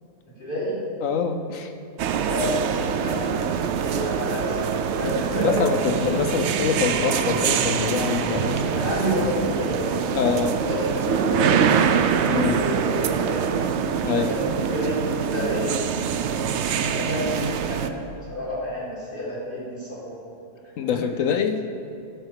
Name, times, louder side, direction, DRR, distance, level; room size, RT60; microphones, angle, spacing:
voice 1, 0.4-0.8 2.3-4.6 4.9-6.2 6.7-7.0 8.5-13.5 14.1-15.7 16.1-16.3 16.8-17.9 18.3-20.2 20.9-21.0, equal, 30° left, -8 dB, 2.3 m, -30 dB
voice 2, 1.0-1.7 5.0-8.6 10.1-10.5 12.3-12.6 14.0-14.3 20.8-21.6, left 6 dB, 70° left, 6 dB, 0.8 m, -25 dB
sound 1, 2.0-17.9, right 7 dB, 85° right, 0.6 m, -24 dB
14.0 x 4.6 x 6.5 m, 2.6 s
omnidirectional pair, 1.8 m